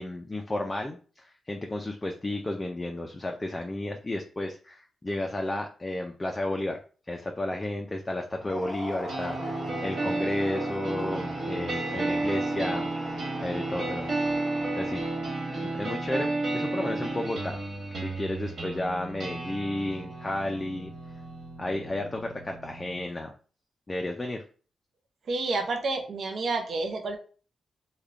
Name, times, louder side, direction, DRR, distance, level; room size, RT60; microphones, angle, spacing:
voice 1, 0.0-6.8 7.1-14.1 14.4-15.1 15.6-16.3 16.5-17.6 17.9-20.9 21.6-23.3 23.9-24.4, left 1 dB, 20° left, 3 dB, 0.4 m, -33 dB
sound 1, 8.3-15.5, left 1 dB, ahead, 0.9 m, -40 dB
sound 2, 9.1-23.1, right 2 dB, 70° right, 1.4 m, -32 dB
voice 2, 25.3-27.2, right 3 dB, 55° right, 4 dB, 0.5 m, -29 dB
3.5 x 2.2 x 3.5 m, 0.39 s
wide cardioid pair, 135°, 0 cm